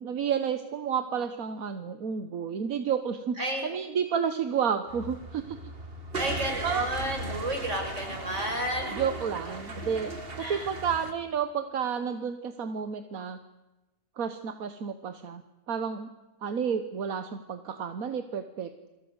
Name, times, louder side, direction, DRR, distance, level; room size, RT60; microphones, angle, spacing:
voice 1, 0.0-5.6 6.4-6.9 8.9-13.4 14.2-15.4 15.7-16.1 16.4-18.9, right 7 dB, 85° right, 9 dB, 1.6 m, -31 dB
voice 2, 3.4-3.7 6.2-9.1 10.4-10.7, right 1 dB, 60° right, 3 dB, 6.1 m, -31 dB
sound 1, 4.9-11.1, right 1 dB, 45° right, 2.4 m, -37 dB
29.0 x 22.5 x 8.0 m, 1.1 s
omnidirectional pair, 1.4 m